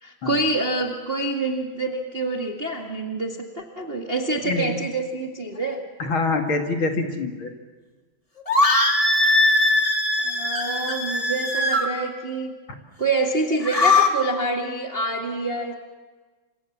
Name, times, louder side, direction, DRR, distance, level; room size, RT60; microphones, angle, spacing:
voice 1, 0.0-5.8 10.2-12.5 13.0-15.7, right 2 dB, 25° right, 2 dB, 1.8 m, -26 dB
voice 2, 6.0-7.5, left 3 dB, 45° left, 4 dB, 2.9 m, -25 dB
sound 1, 8.5-11.9 13.5-14.1, left 2 dB, 15° left, 1.9 m, -20 dB
29.5 x 27.0 x 7.3 m, 1.3 s
omnidirectional pair, 3.3 m